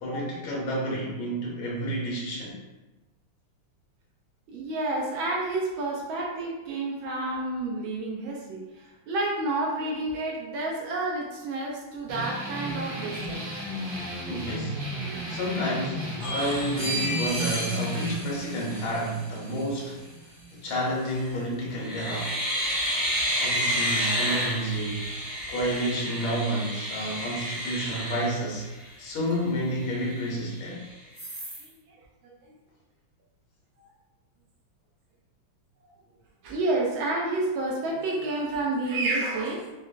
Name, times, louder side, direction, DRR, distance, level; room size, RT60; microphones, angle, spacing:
voice 1, 0.0-2.6 14.3-20.0 20.6-22.4 23.4-25.1 25.5-30.9, equal, 70° left, -3 dB, 1.5 m, -30 dB
voice 2, 4.5-13.5 29.3-29.4 31.6-31.7 32.2-32.5 33.8-33.9 36.4-39.7, right 2 dB, 75° right, -2 dB, 1.3 m, -30 dB
sound 1, 12.1-21.1, right 1 dB, 55° right, 1.2 m, -35 dB
sound 2, 16.2-19.2 21.0-21.4 21.8-29.0 29.5-29.6 29.8-30.7 31.2-31.6, equal, 15° right, 0.5 m, -31 dB
5.0 x 2.0 x 2.5 m, 1.1 s
omnidirectional pair, 2.4 m